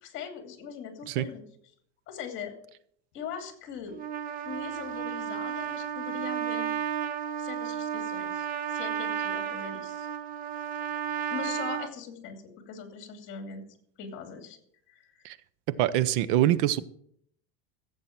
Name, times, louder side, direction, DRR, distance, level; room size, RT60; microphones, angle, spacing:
voice 1, 0.0-1.4 2.1-2.5 3.1-4.0 4.4-6.7 7.4-10.1 11.3-13.6 14.0-14.6 14.9-15.2, left 7 dB, 40° left, 6 dB, 2.7 m, -41 dB
Trumpet, 3.9-11.9, right 9 dB, 30° right, 0.9 m, -33 dB
voice 2, 15.7-16.8, right 13 dB, 60° right, 17 dB, 0.8 m, -24 dB
15.0 x 8.0 x 5.9 m, 0.66 s
supercardioid pair, 155°, 30 cm